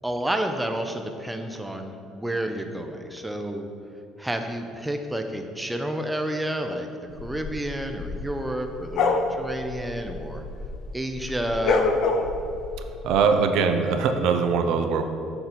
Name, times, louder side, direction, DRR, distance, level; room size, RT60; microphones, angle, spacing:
voice 1, 0.0-3.7 4.2-6.9 7.2-10.4 10.9-11.9, right 1 dB, 5° right, 5 dB, 0.5 m, -30 dB
sound 1, 7.2-10.9 11.2-13.2, left 3 dB, 60° left, 0.6 m, -27 dB
voice 2, 13.0-15.0, right 5 dB, 75° right, 7 dB, 0.5 m, -21 dB
6.8 x 4.1 x 5.8 m, 2.7 s
cardioid pair, 115°, 0 cm